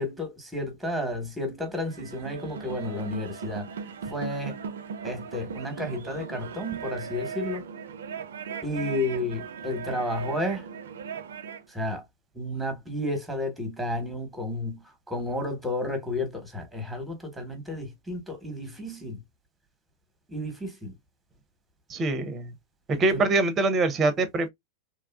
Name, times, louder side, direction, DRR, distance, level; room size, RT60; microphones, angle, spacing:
voice 1, 0.0-3.7 4.1-4.6 5.0-7.6 8.6-10.7 11.7-12.0 12.3-19.2 20.3-20.9 22.9-23.2, left 1 dB, ahead, 1.2 m, -32 dB
sound 1, 1.8-11.7, right 6 dB, 75° right, 0.4 m, -38 dB
voice 2, 21.9-22.5 23.0-24.5, right 3 dB, 30° right, 0.6 m, -24 dB
2.9 x 2.3 x 2.3 m
hypercardioid pair, 105°, 0 cm